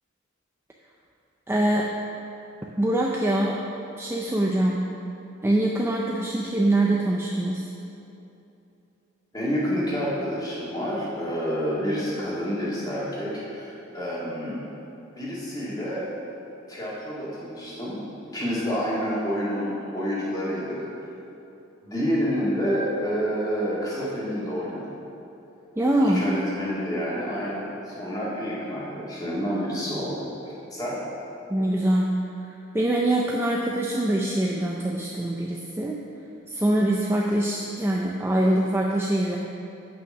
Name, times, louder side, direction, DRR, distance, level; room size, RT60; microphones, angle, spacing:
voice 1, 1.5-2.0 2.8-3.6 4.0-4.9 5.4-7.7 25.8-26.3 31.5-32.2 32.7-36.0 36.5-39.4, right 1 dB, 10° right, -2 dB, 0.4 m, -24 dB
voice 2, 9.3-14.6 15.2-16.1 16.7-18.0 18.3-20.9 21.8-24.9 26.0-30.3 30.7-31.0, equal, 20° left, -7 dB, 2.1 m, -28 dB
8.7 x 5.6 x 6.0 m, 2.8 s
head